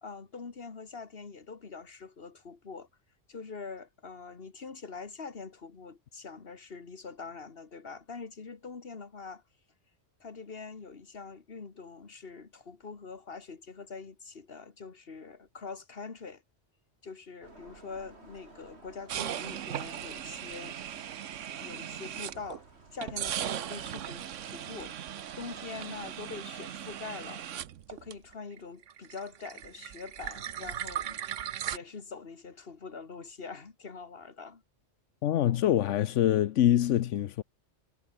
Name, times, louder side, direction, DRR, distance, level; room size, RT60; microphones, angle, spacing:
voice 1, 0.0-2.9 3.3-9.4 10.2-16.4 17.0-20.8 21.6-22.6 22.9-25.0 25.4-27.4 27.9-31.2 31.7-34.6, left 4 dB, 50° left, 2.0 m, -44 dB
sound 1, 17.4-26.4, right 2 dB, 60° right, 4.4 m, -55 dB
sound 2, 19.1-22.6 23.0-28.6 28.8-31.8, right 10 dB, 90° right, 1.2 m, -38 dB
voice 2, 35.2-37.4, left 12 dB, 85° left, 1.0 m, -25 dB
omnidirectional pair, 1.2 m